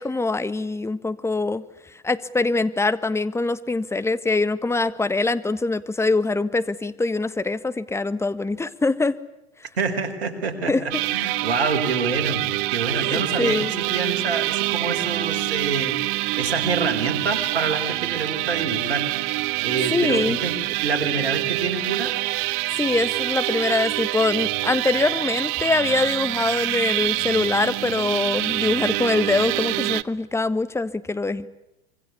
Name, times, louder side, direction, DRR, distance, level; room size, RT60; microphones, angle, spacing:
voice 1, 0.0-1.6 2.0-9.2 10.7-10.8 13.1-13.7 19.9-20.4 22.8-31.5, left 3 dB, 10° left, 13 dB, 1.6 m, -23 dB
voice 2, 9.8-16.0 16.4-19.2 19.6-22.1, right 4 dB, 85° right, 7 dB, 5.1 m, -27 dB
sound 1, 10.9-30.0, right 19 dB, 55° right, 1.1 m, -26 dB
26.0 x 24.5 x 8.5 m, 0.89 s
hypercardioid pair, 95°, 31 cm